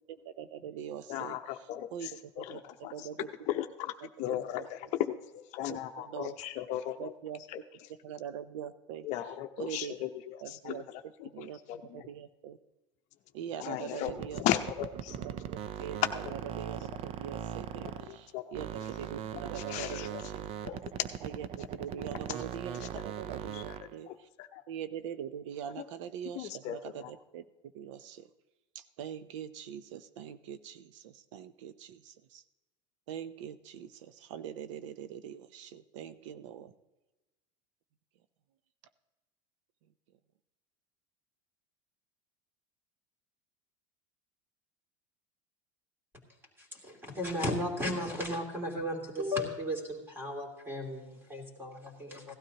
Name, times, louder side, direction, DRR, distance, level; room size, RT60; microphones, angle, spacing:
voice 1, 0.1-2.1 2.4-3.3 4.0-4.1 5.7-6.4 7.0-7.4 8.0-9.1 9.6-10.0 10.4-10.9 11.3-12.6 13.3-14.4 15.2-20.5 21.2-24.1 24.7-27.4 27.7-28.3 28.7-32.4 33.1-36.7, right 9 dB, 80° right, 13 dB, 0.7 m, -43 dB
voice 2, 1.1-2.1 2.4-3.1 3.5-3.9 4.2-5.1 5.5-7.1 7.5-7.6 9.0-10.8 11.2-12.1 13.6-14.1 14.4-15.1 18.1-18.4 19.6-20.2 20.6-20.8 23.5-23.6 24.1-24.2 24.5-24.6 26.3-27.1, left 12 dB, 50° left, 7 dB, 0.7 m, -36 dB
sound 1, 14.0-18.3 18.5-24.0, right 9 dB, 40° right, 0.5 m, -40 dB
voice 3, 46.6-52.3, left 1 dB, 15° right, 2 dB, 2.8 m, -35 dB
16.5 x 12.5 x 2.9 m, 1.1 s
supercardioid pair, 135°, 16 cm